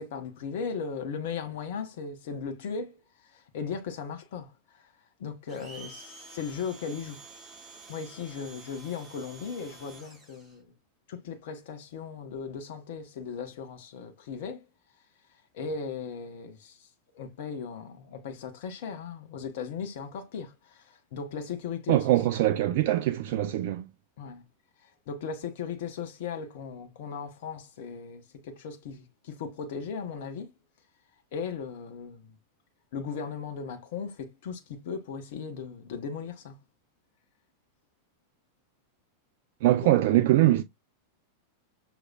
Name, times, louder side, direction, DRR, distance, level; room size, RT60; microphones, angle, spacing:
voice 1, 0.0-3.0 3.2-4.9 5.2-7.2 7.9-10.7 11.1-14.6 15.5-16.9 17.1-22.1 24.2-24.4 24.8-30.5 31.3-32.4 32.9-36.6, left 6 dB, 55° left, 1.0 m, -37 dB
Domestic sounds home sounds, 5.5-10.6, right 3 dB, ahead, 3.3 m, -49 dB
voice 2, 21.9-23.8 39.6-40.6, right 14 dB, 55° right, 0.4 m, -23 dB
6.3 x 3.1 x 2.4 m
figure-of-eight pair, 90°, 0 cm